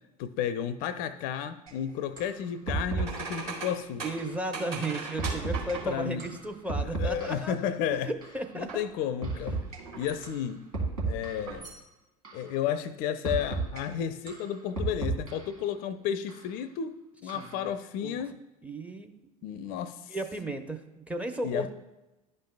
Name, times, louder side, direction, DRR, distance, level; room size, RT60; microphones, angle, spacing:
voice 1, 0.2-4.0 5.9-6.3 6.8-8.1 8.5-9.6 9.9-10.6 11.1-11.7 12.3-18.4 19.4-20.2 21.4-21.7, left 9 dB, 50° left, 12 dB, 0.5 m, -32 dB
sound 1, 1.7-1.8 2.2-2.4 2.7-3.4 4.2-4.4 5.2-5.7 6.2-7.6 8.2-8.4 9.2-9.8 10.2-10.4 10.7-11.6 12.2-12.5 13.2-13.8 14.3-15.6 16.3-16.4 17.3-17.7, right 3 dB, 80° right, 2.0 m, -33 dB
sound 2, 2.9-6.2 8.7-8.9 9.4-10.3 11.3-11.8, right 4 dB, 55° right, 2.2 m, -39 dB
voice 2, 4.0-7.6 8.1-8.9 9.6-9.7 17.3-17.7 18.0-18.2 18.6-19.1 20.1-21.7, right 1 dB, 5° right, 8 dB, 0.7 m, -34 dB
11.5 x 5.4 x 2.2 m, 1.0 s
figure-of-eight pair, 75°, 19 cm